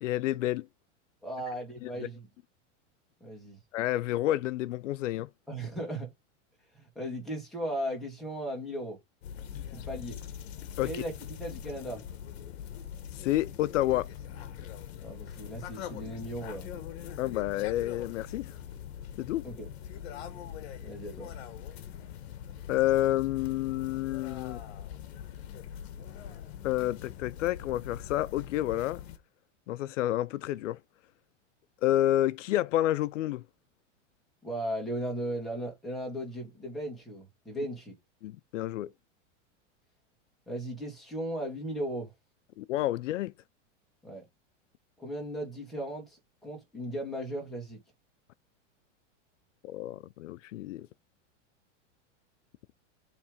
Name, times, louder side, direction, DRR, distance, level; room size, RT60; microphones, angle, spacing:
voice 1, 0.0-0.7 1.8-1.9 3.7-5.3 10.8-11.0 13.2-14.1 17.2-18.5 19.2-19.5 22.7-24.6 26.6-29.0 29.7-30.8 31.8-33.4 38.2-38.9 42.6-43.3 49.6-50.9, left 14 dB, 80° left, 0.6 m, -29 dB
voice 2, 1.2-2.3 3.2-3.6 5.5-6.1 6.8-9.0 9.7-10.2 10.8-11.1 11.4-12.0 15.0-16.8 19.4-19.7 20.8-21.3 34.4-37.9 40.5-42.1 44.0-44.3 45.0-47.8, right 1 dB, ahead, 1.8 m, -37 dB
sound 1, 9.2-29.2, left 9 dB, 55° left, 1.2 m, -42 dB
7.1 x 3.3 x 5.1 m
supercardioid pair, 170°, 37 cm